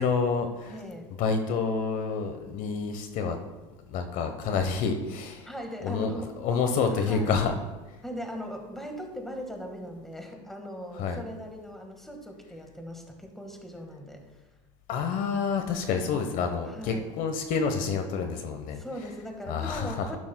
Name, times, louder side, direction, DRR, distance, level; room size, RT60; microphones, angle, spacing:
voice 1, 0.0-0.8 1.2-3.4 3.9-5.5 5.8-6.1 6.4-7.5 11.0-11.2 14.9-18.8 19.5-20.2, left 5 dB, 55° left, 6 dB, 1.1 m, -28 dB
voice 2, 0.7-1.1 5.4-6.3 7.0-7.3 8.0-14.2 15.9-16.1 16.7-17.1 18.7-20.2, equal, ahead, 3 dB, 1.7 m, -39 dB
11.5 x 11.0 x 2.3 m, 1.1 s
supercardioid pair, 105°, 16 cm